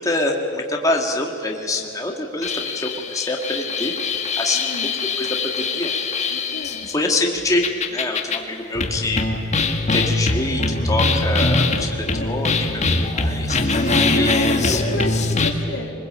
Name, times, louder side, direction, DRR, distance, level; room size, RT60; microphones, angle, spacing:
voice 1, 0.0-4.7 5.2-5.9 6.9-9.3 9.9-14.8, left 2 dB, 20° left, 1 dB, 2.0 m, -25 dB
sound 1, 2.4-7.0 7.6-8.4 8.7-15.5, left 3 dB, 35° left, 1.8 m, -22 dB
voice 2, 4.5-4.9 6.3-6.9 11.4-12.5 13.8-14.4 14.6-16.1, left 1 dB, 75° left, 2 dB, 3.2 m, -32 dB
24.5 x 21.0 x 8.9 m, 2.7 s
head